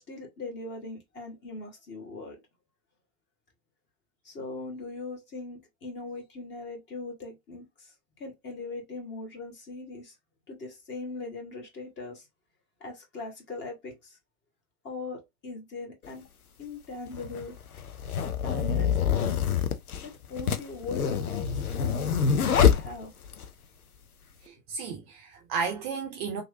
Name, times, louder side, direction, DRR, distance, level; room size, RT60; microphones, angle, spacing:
voice 1, 0.0-2.4 4.2-10.1 10.5-12.2 12.8-14.2 14.8-16.2 16.6-17.6 18.4-19.3 20.0-23.1, left 3 dB, 25° left, 1.3 m, -40 dB
sound 1, 16.0-16.1 17.1-23.5, left 7 dB, 85° left, 0.6 m, -26 dB
voice 2, 24.4-26.4, right 5 dB, 30° right, 0.4 m, -33 dB
3.0 x 2.5 x 2.7 m
figure-of-eight pair, 85°, 43 cm